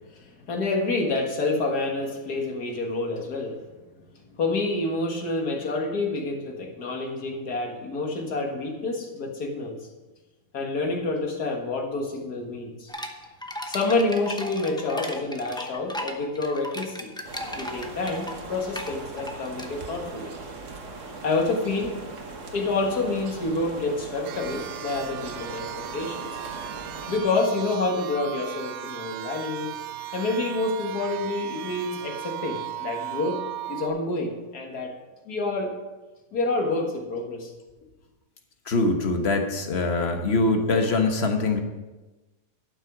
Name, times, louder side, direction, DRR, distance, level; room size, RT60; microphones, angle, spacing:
voice 1, 0.1-3.6 4.4-9.8 10.5-12.9 13.7-17.1 17.5-20.3 21.2-22.0 22.5-26.3 27.1-29.7 30.1-33.4 33.7-34.9 35.3-35.7 36.3-37.5, left 2 dB, 75° left, 2 dB, 2.1 m, -28 dB
sound 1, 12.9-20.0, left 1 dB, 5° left, 0.4 m, -36 dB
sound 2, 17.2-27.2, right 3 dB, 55° right, 1.5 m, -40 dB
sound 3, 24.2-33.9, right 12 dB, 70° right, 1.1 m, -36 dB
voice 2, 38.7-41.6, left 3 dB, 45° left, 4 dB, 1.3 m, -23 dB
12.0 x 6.3 x 6.1 m, 1.1 s
omnidirectional pair, 1.7 m